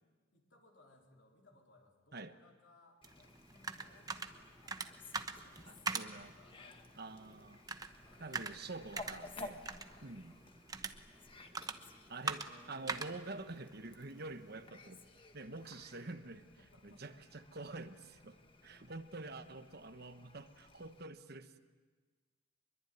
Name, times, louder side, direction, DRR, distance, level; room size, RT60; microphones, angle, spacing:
voice 1, 0.3-4.9 5.2-6.9 8.0-8.7 10.6-11.9 16.6-17.1, left 2 dB, 60° left, 1 dB, 4.2 m, -66 dB
Fowl, 3.0-21.0, left 2 dB, 25° left, 1.6 m, -56 dB
sound 1, 3.0-14.7, right 4 dB, 20° right, 0.9 m, -45 dB
voice 2, 5.7-6.3 7.0-7.6 8.2-9.7 10.0-10.4 12.1-15.0 15.3-16.4 16.8-21.6, right 2 dB, 50° right, 9 dB, 1.2 m, -47 dB
25.0 x 22.5 x 9.4 m, 1.4 s
head